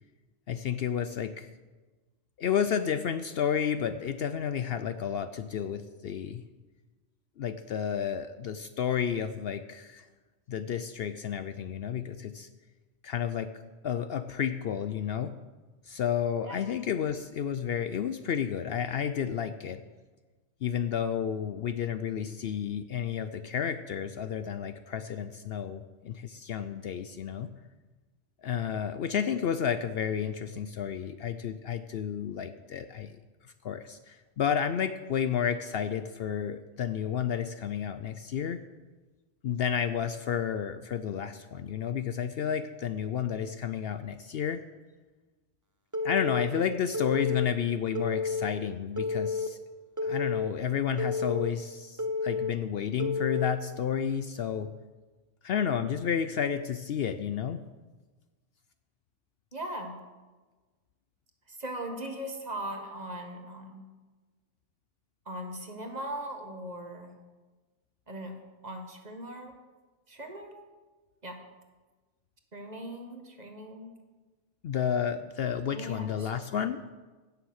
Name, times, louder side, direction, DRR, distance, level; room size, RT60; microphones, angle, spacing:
voice 1, 0.5-1.5 2.4-6.4 7.4-10.1 10.5-12.5 13.0-13.5 13.8-15.3 15.9-19.8 20.6-27.5 28.4-33.2 33.6-38.6 39.4-44.6 46.0-49.6 50.0-54.7 55.4-57.6 74.6-76.8, left 8 dB, 65° left, 11 dB, 0.7 m, -31 dB
Telephone, 45.9-46.4 46.9-47.5 47.9-48.5 49.0-49.5 50.0-50.5 51.0-51.5 52.0-52.5 53.0-53.5, left 4 dB, 20° right, 0.7 m, -30 dB
voice 2, 59.5-60.0 61.5-63.8 65.3-67.1 68.1-68.4 68.6-69.6 70.1-70.6 71.2-71.4 72.5-73.9 75.7-76.3, right 1 dB, 35° right, 4 dB, 1.4 m, -39 dB
16.5 x 6.8 x 6.4 m, 1.3 s
omnidirectional pair, 1.2 m